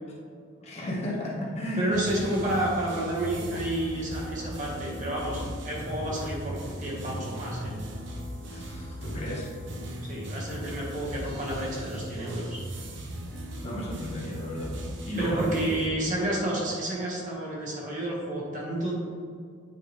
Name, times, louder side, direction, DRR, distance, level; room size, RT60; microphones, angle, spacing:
voice 1, 0.6-2.2 8.5-9.6 13.3-14.8 15.0-15.6, equal, 30° left, -4 dB, 1.1 m, -34 dB
voice 2, 1.8-7.7 10.0-12.6 15.2-18.9, right 1 dB, 40° right, -4 dB, 1.7 m, -30 dB
sound 1, 1.9-15.9, right 1 dB, 65° right, 0.8 m, -38 dB
9.0 x 4.8 x 3.4 m, 2.3 s
head